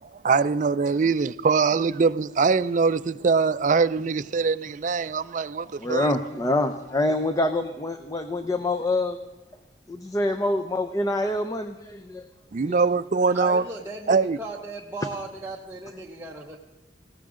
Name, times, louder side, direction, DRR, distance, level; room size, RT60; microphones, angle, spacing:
voice 1, 0.0-6.1 12.5-13.6 14.1-14.4, right 4 dB, 45° right, 0.4 m, -23 dB
voice 2, 5.8-9.2 9.9-12.2 12.6-12.8, left 2 dB, 20° left, 0.6 m, -26 dB
voice 3, 13.3-16.6, right 2 dB, 15° right, 0.9 m, -36 dB
19.0 x 16.5 x 3.7 m
head